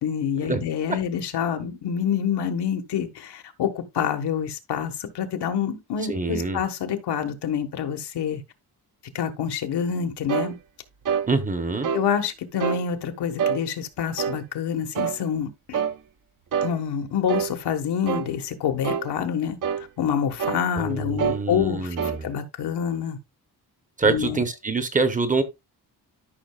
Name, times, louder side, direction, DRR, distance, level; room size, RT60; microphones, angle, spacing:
voice 1, 0.0-8.4 9.1-10.5 11.9-15.8 16.6-19.6 20.0-23.2 24.0-24.4, left 8 dB, 90° left, 1.5 m, -27 dB
voice 2, 6.1-6.6 11.3-11.9 20.8-22.3 24.0-25.4, right 4 dB, 20° right, 0.8 m, -25 dB
sound 1, 10.3-10.5 11.1-11.3 11.8-12.1 12.6-12.8 13.4-13.6 14.2-14.4 15.0-15.2 15.7-16.0 16.5-16.8 17.3-17.5 18.1-18.3 18.8-19.1 19.6-19.8 20.4-20.6 21.2-21.4 22.0-22.2, right 7 dB, 55° right, 0.7 m, -26 dB
13.0 x 5.8 x 2.3 m
wide cardioid pair, 180°, 39 cm